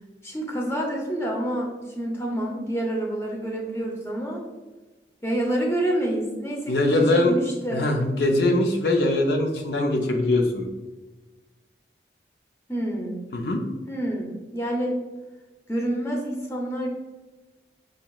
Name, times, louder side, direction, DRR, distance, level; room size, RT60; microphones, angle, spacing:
voice 1, 0.2-4.4 5.2-7.9 12.7-13.2 13.9-15.0 15.7-16.9, right 1 dB, 15° left, -1 dB, 0.7 m, -28 dB
voice 2, 6.7-7.3 7.7-10.7 13.3-13.6, left 2 dB, 70° left, 3 dB, 0.5 m, -22 dB
6.2 x 2.9 x 2.3 m, 1.2 s
head